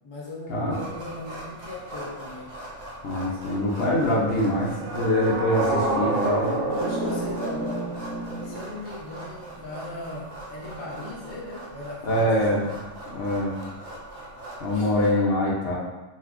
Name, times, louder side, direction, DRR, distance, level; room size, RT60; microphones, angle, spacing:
voice 1, 0.0-2.6 5.6-6.2 6.7-8.0 8.4-12.8 14.7-14.9, left 2 dB, 35° left, -4 dB, 0.4 m, -37 dB
sound 1, 0.7-15.1, right 1 dB, 80° right, 1.0 m, -41 dB
voice 2, 3.0-5.6 6.0-6.5 12.0-12.6 13.1-13.6 14.6-15.8, left 1 dB, 60° left, -4 dB, 0.8 m, -24 dB
sound 2, 4.2-8.9, right 2 dB, 60° right, 0.7 m, -28 dB
2.7 x 2.3 x 3.5 m, 1.1 s
omnidirectional pair, 1.3 m